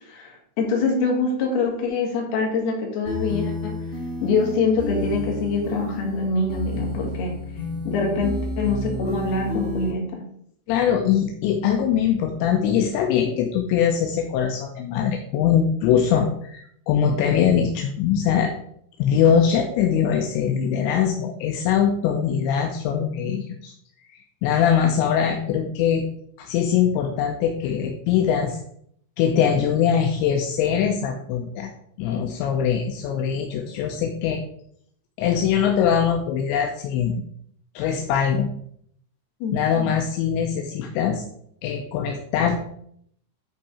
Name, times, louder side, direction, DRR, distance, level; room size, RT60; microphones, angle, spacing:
voice 1, 0.1-3.8 4.2-7.4 7.9-10.3 39.4-39.9, left 4 dB, 65° left, 0 dB, 3.6 m, -24 dB
sound 1, 3.0-9.9, left 2 dB, 30° right, 0.3 m, -30 dB
voice 2, 10.7-18.5 19.0-23.7 24.1-26.0 26.4-28.6 29.2-31.7 32.0-34.4 35.2-37.2 37.8-38.5 39.5-41.2 41.6-42.6, left 8 dB, 85° left, 3 dB, 3.0 m, -22 dB
10.5 x 4.7 x 4.2 m, 0.67 s
omnidirectional pair, 5.2 m